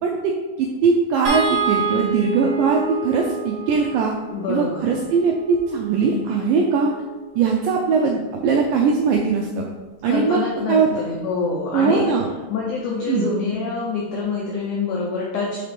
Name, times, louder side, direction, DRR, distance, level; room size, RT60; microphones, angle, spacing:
voice 1, 0.0-4.1 4.5-6.9 7.4-9.7 10.0-10.4 10.7-10.9 11.7-12.3 13.1-13.3, right 5 dB, 85° right, 1 dB, 1.9 m, -20 dB
sound 1, 1.2-7.6 9.1-9.3 9.6-9.8, right 4 dB, 70° right, 0.9 m, -29 dB
voice 2, 4.3-4.8 10.1-12.1 12.5-15.6, left 4 dB, 85° left, -2 dB, 1.7 m, -26 dB
7.2 x 4.1 x 3.3 m, 1.2 s
omnidirectional pair, 4.5 m